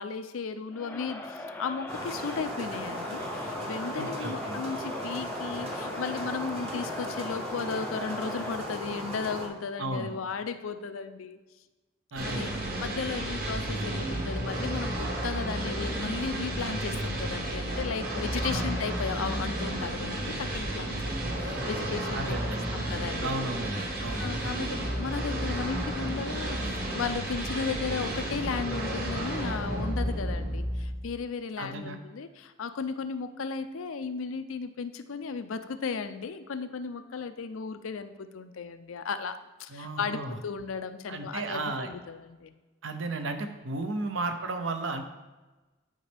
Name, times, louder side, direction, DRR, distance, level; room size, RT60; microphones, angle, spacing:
voice 1, 0.0-11.4 12.2-12.5 12.8-22.4 22.7-23.5 24.0-42.5, left 5 dB, 80° left, 10 dB, 0.5 m, -35 dB
Crowd, 0.7-8.8, left 2 dB, 10° left, 0.4 m, -40 dB
sound 1, 1.9-9.5, equal, 30° right, 1.0 m, -37 dB
voice 2, 4.0-4.6 9.8-10.2 12.1-12.6 18.4-18.7 22.1-22.7 23.2-24.3 31.6-32.0 39.7-40.4 41.1-41.9 42.8-45.0, right 2 dB, 70° right, 7 dB, 0.7 m, -34 dB
sound 2, 12.2-31.2, right 1 dB, 45° right, 1.4 m, -32 dB
9.6 x 5.3 x 3.4 m, 1.2 s
head